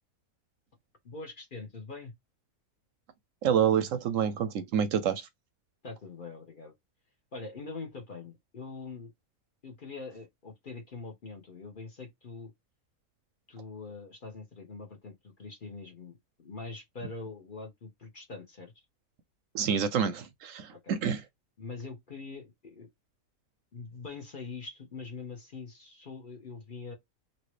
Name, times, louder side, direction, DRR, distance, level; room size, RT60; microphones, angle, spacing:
voice 1, 1.0-2.1 5.8-6.7 7.3-9.1 9.6-12.5 13.5-18.8 20.7-21.0 21.6-22.9 23.7-26.9, left 4 dB, 40° left, 1.0 m, -43 dB
voice 2, 3.4-5.3 19.5-21.2, right 8 dB, 70° right, 0.9 m, -28 dB
2.9 x 2.8 x 3.1 m
omnidirectional pair, 1.5 m